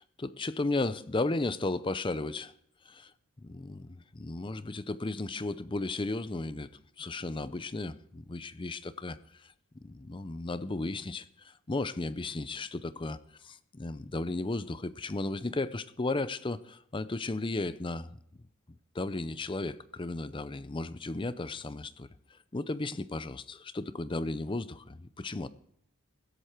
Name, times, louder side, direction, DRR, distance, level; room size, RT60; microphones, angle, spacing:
voice 1, 0.0-2.5 2.9-3.1 3.4-6.7 7.0-9.2 9.8-13.2 13.4-18.2 18.9-22.1 22.5-25.5, left 2 dB, 20° left, 0.5 m, -34 dB
23.0 x 8.0 x 4.5 m
head